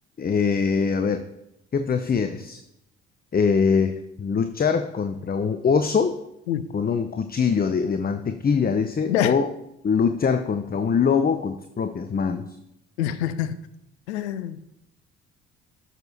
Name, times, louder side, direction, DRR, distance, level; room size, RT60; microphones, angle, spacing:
voice 1, 0.2-1.2 1.7-2.6 3.3-6.2 6.7-9.5 9.8-12.5, left 6 dB, 25° left, 8 dB, 0.8 m, -23 dB
voice 2, 13.0-13.5 14.1-14.6, left 11 dB, 80° left, 14 dB, 0.7 m, -25 dB
12.5 x 6.9 x 4.2 m, 0.83 s
hypercardioid pair, 50°, 33 cm